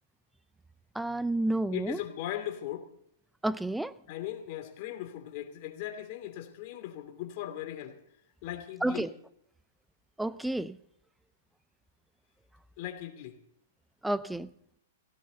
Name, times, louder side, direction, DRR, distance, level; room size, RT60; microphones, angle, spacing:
voice 1, 0.9-2.0 3.4-3.9 8.8-9.1 10.2-10.8 14.0-14.5, right 1 dB, 5° right, 0.5 m, -30 dB
voice 2, 1.7-2.9 4.1-8.0 8.4-9.0 12.8-13.4, left 12 dB, 50° left, 2.7 m, -38 dB
17.5 x 16.5 x 4.0 m
hypercardioid pair, 125°, 0 cm